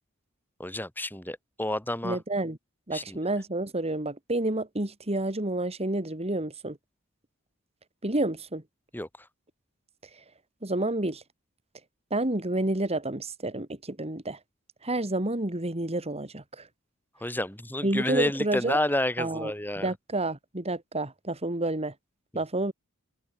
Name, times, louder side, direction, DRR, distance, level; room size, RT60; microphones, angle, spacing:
voice 1, 0.6-2.2 2.9-3.2 8.9-9.1 17.2-19.9, left 1 dB, 10° left, 3.7 m, -30 dB
voice 2, 2.0-2.6 2.9-6.8 8.0-8.6 10.6-11.2 12.1-14.4 14.8-16.7 17.8-18.8 19.2-19.5 19.8-21.9 22.3-22.7, right 2 dB, 30° right, 2.6 m, -29 dB
open air
head